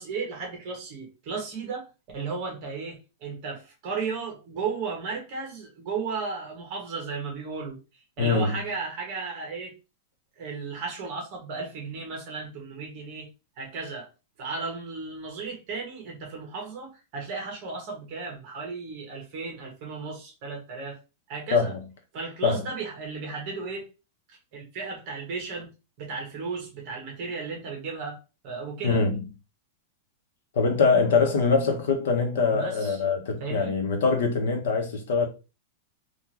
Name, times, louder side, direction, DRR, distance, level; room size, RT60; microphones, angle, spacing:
voice 1, 0.0-1.9 2.1-9.7 10.4-13.3 13.6-14.1 14.4-21.0 21.3-21.7 22.1-23.9 24.3-25.7 26.0-28.2 28.4-29.0 32.5-33.0 33.4-33.7, right 4 dB, 30° right, 1.3 m, -35 dB
voice 2, 8.2-8.5 21.5-21.8 22.4-22.6 28.8-29.2 30.5-35.3, left 4 dB, 60° left, 1.1 m, -23 dB
3.8 x 2.5 x 3.0 m
supercardioid pair, 180°, 0 cm